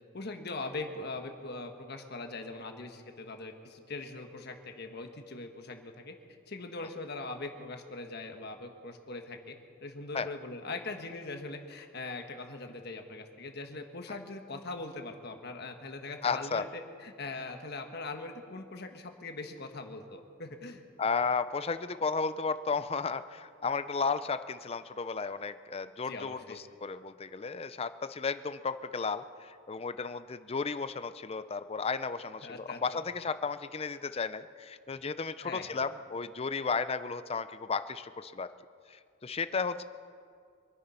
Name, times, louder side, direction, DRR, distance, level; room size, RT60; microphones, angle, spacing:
voice 1, 0.1-6.2 6.5-9.5 9.8-20.8 26.1-26.6 32.4-33.0 35.4-35.8, left 3 dB, 50° left, 5 dB, 1.4 m, -41 dB
voice 2, 16.2-16.7 21.0-38.5 38.9-39.8, left 5 dB, 30° left, 13 dB, 0.5 m, -34 dB
25.0 x 10.0 x 5.6 m, 2.3 s
head